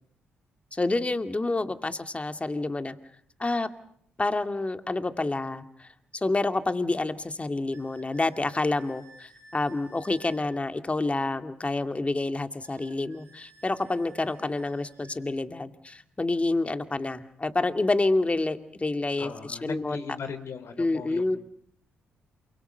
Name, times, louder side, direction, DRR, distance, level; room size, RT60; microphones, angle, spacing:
voice 1, 0.7-3.0 3.4-3.7 4.2-20.0 20.8-21.4, left 2 dB, 25° left, 9 dB, 2.2 m, -28 dB
sound 1, 7.7-10.5 12.6-15.2, right 2 dB, 60° right, 6.9 m, -54 dB
voice 2, 19.2-21.4, left 5 dB, 55° left, 9 dB, 3.7 m, -38 dB
28.5 x 24.5 x 6.8 m, 0.65 s
hypercardioid pair, 40°, 5 cm